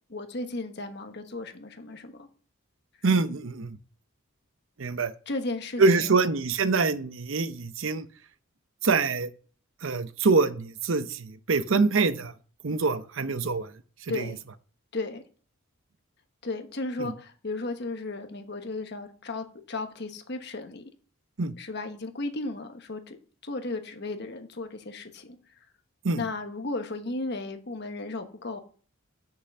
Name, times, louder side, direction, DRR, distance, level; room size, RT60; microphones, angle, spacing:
voice 1, 0.1-2.3 5.3-6.3 14.1-14.4 14.9-15.2 16.4-20.9 21.6-23.2 23.4-25.4 26.1-28.6, left 2 dB, 50° left, 1.3 m, -35 dB
voice 2, 3.0-3.8 4.8-5.1 5.8-8.1 8.8-9.3 9.8-12.3 12.6-13.7 14.1-14.3 17.0-17.1 21.4-21.5 26.0-26.2, right 4 dB, 65° right, 0.7 m, -25 dB
8.3 x 6.8 x 6.6 m
head